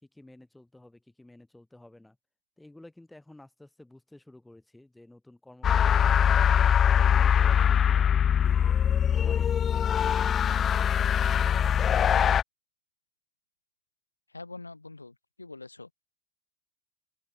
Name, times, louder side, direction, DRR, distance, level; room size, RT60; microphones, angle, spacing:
voice 1, 0.0-2.2 2.6-6.7 7.1-8.6 9.0-10.6, left 1 dB, 5° left, 4.5 m, -52 dB
Horror Soundscape, 5.6-12.4, left 8 dB, 30° left, 0.5 m, -22 dB
voice 2, 14.3-15.9, left 3 dB, 85° left, 3.0 m, -44 dB
open air
figure-of-eight pair, 80°, 0 cm